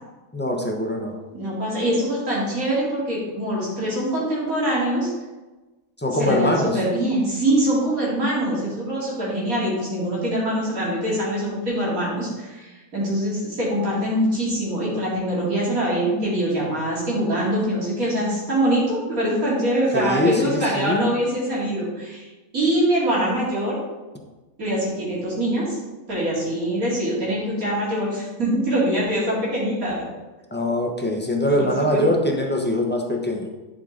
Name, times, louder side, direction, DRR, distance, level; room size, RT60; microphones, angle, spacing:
voice 1, 0.3-1.2 6.0-6.8 19.9-21.0 30.5-33.5, left 1 dB, 10° left, 1 dB, 0.9 m, -22 dB
voice 2, 1.3-5.1 6.2-22.3 22.5-23.8 24.6-25.8 26.1-30.1 31.6-32.0, right 1 dB, 85° right, -6 dB, 3.0 m, -23 dB
11.0 x 5.6 x 3.9 m, 1.1 s
omnidirectional pair, 1.4 m